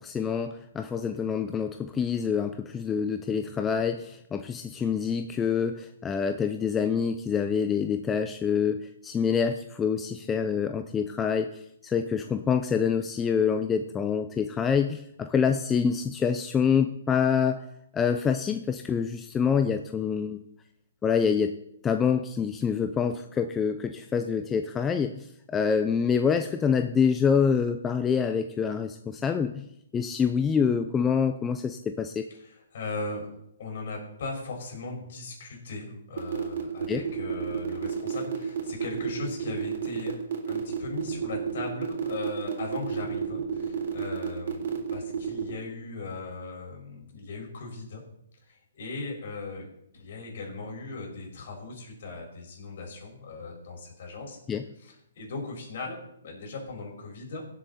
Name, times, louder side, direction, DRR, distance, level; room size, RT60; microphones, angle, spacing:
voice 1, 0.0-11.5 11.8-17.7 17.9-20.4 21.0-21.6 21.8-29.6 29.9-32.3 36.9-37.1 54.5-54.6, left 6 dB, 10° left, 7 dB, 0.5 m, -26 dB
voice 2, 32.4-33.3 33.6-40.2 40.5-48.0 48.4-49.7 49.9-54.4 54.8-57.5, left 3 dB, 55° left, 0 dB, 5.4 m, -38 dB
sound 1, 36.2-45.5, right 6 dB, 60° right, 3.5 m, -31 dB
16.5 x 7.7 x 4.2 m, 0.78 s
hypercardioid pair, 155°, 0 cm